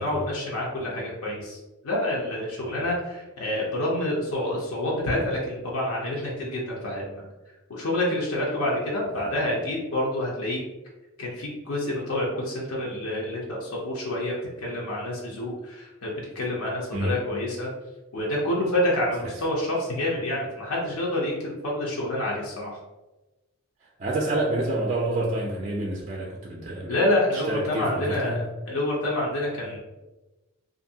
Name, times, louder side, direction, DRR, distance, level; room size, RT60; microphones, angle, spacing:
voice 1, 0.0-1.6 1.8-7.3 7.7-10.6 11.2-17.7 18.1-22.8 26.9-29.8, left 1 dB, 80° left, -4 dB, 0.6 m, -28 dB
voice 2, 24.0-27.0 27.3-28.4, right 2 dB, 35° right, -2 dB, 0.3 m, -28 dB
2.6 x 2.5 x 2.7 m, 1.1 s
head